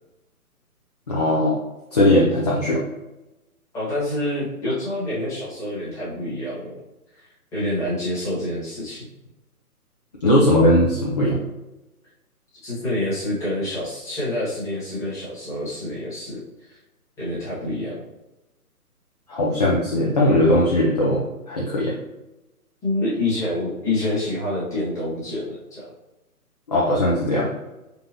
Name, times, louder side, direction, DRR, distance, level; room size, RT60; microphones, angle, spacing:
voice 1, 1.1-1.6 1.9-2.8 10.2-11.4 19.3-21.9 26.7-27.5, left 1 dB, 30° left, -5 dB, 0.5 m, -19 dB
voice 2, 3.7-6.8 7.2-9.1 12.6-16.4 16.7-16.8 17.2-18.0 22.8-25.9, left 1 dB, 5° left, -10 dB, 1.2 m, -27 dB
3.9 x 3.6 x 2.8 m, 0.99 s
figure-of-eight pair, 145°, 46 cm